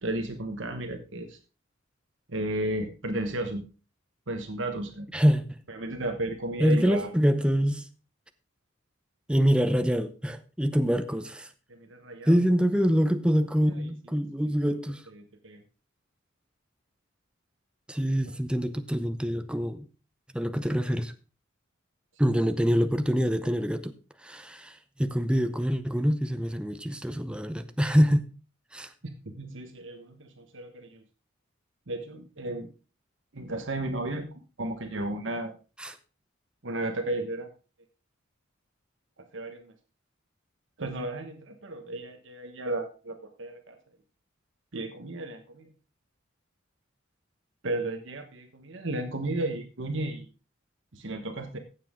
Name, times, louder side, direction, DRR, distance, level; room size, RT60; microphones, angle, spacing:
voice 1, 0.0-1.4 2.3-3.6 4.3-5.1 5.7-7.1 11.7-12.4 14.5-14.6 15.1-15.6 29.4-31.0 31.9-32.7 33.3-34.3 34.6-35.5 36.6-37.5 39.3-39.7 40.8-43.8 44.7-45.7 47.6-50.3 50.9-51.6, right 1 dB, 65° right, 6 dB, 1.3 m, -34 dB
voice 2, 5.1-5.6 6.6-7.9 9.3-11.5 12.3-15.0 17.9-19.9 20.3-21.1 22.2-23.9 24.2-28.3 28.7-28.9 35.8-36.0, equal, 5° right, 9 dB, 0.6 m, -25 dB
15.0 x 7.4 x 3.7 m, 0.34 s
head